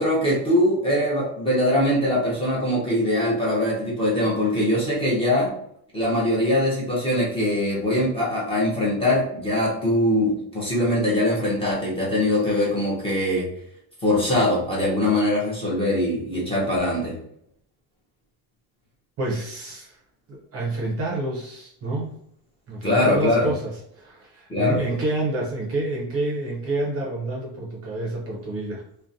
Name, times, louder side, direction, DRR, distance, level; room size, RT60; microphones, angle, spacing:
voice 1, 0.0-5.5 5.9-13.5 14.0-17.2 22.8-23.5 24.5-24.8, left 1 dB, 15° left, -6 dB, 0.6 m, -22 dB
voice 2, 19.2-20.0 20.3-22.1 22.7-23.7 24.0-28.8, right 2 dB, 35° right, -2 dB, 0.5 m, -28 dB
2.4 x 2.1 x 2.6 m, 0.71 s
cardioid pair, 170°, 42 cm